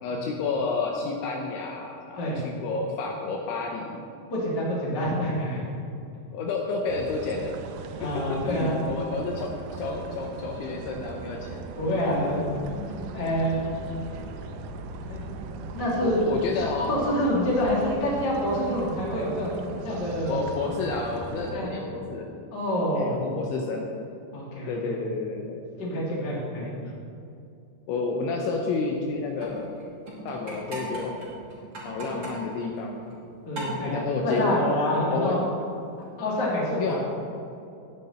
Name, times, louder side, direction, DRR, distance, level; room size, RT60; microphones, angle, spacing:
voice 1, 0.0-4.0 6.3-7.6 8.1-9.5 9.8-11.7 16.0-16.9 20.3-22.3 23.0-23.9 24.7-25.6 26.6-26.9 27.9-29.7 30.2-31.1 31.8-33.1 33.8-34.6 35.0-35.4 36.8-37.0, left 4 dB, 75° left, 1 dB, 3.1 m, -30 dB
voice 2, 4.3-5.8 8.0-8.8 11.8-13.5 15.1-15.2 15.7-16.2 16.9-20.4 21.5-21.9 22.5-23.2 24.3-24.9 25.8-26.7 33.4-35.4 36.2-37.0, left 1 dB, 25° left, -5 dB, 2.7 m, -27 dB
sound 1, 6.9-21.6, right 5 dB, 90° right, 2.5 m, -39 dB
sound 2, 12.6-17.9, left 2 dB, 65° right, 3.0 m, -44 dB
sound 3, 29.3-33.3 33.5-34.6 35.9-36.1, right 1 dB, 35° right, 2.2 m, -39 dB
16.0 x 9.8 x 4.3 m, 2.7 s
omnidirectional pair, 5.8 m